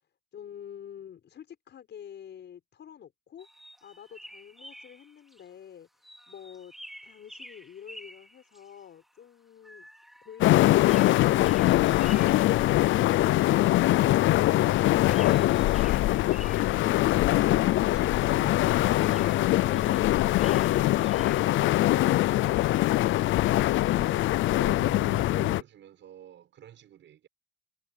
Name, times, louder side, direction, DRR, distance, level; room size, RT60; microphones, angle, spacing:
voice 1, 0.3-3.5 3.8-5.9 6.3-6.7 7.0-9.9, left 9 dB, 60° left, 6.4 m, -47 dB
sound 1, 3.4-5.5 6.0-9.2 9.6-14.8 15.0-17.0 17.4-21.5, equal, ahead, 2.6 m, -50 dB
sound 2, 10.4-25.6, left 16 dB, 75° left, 0.5 m, -23 dB
voice 2, 17.0-20.2 20.9-23.1 23.7-27.3, right 10 dB, 70° right, 6.8 m, -48 dB
cardioid pair, 90°, 20 cm